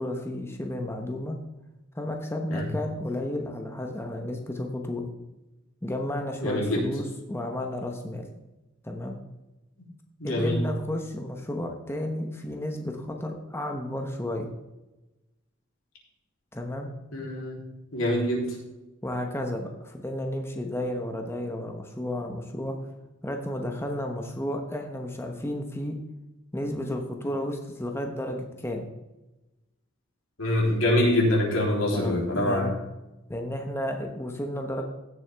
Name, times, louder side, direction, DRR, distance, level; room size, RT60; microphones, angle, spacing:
voice 1, 0.0-1.4 1.9-5.1 5.8-8.3 8.8-9.2 10.2-14.5 16.5-16.9 19.0-22.8 23.2-26.0 26.5-28.9 31.9-32.7 33.3-34.8, left 1 dB, 10° left, 3 dB, 1.0 m, -32 dB
voice 2, 6.4-6.8 10.2-10.6 17.1-17.6 17.9-18.6 30.4-32.7, left 1 dB, 85° left, -2 dB, 3.4 m, -25 dB
16.0 x 7.1 x 3.5 m, 1.0 s
head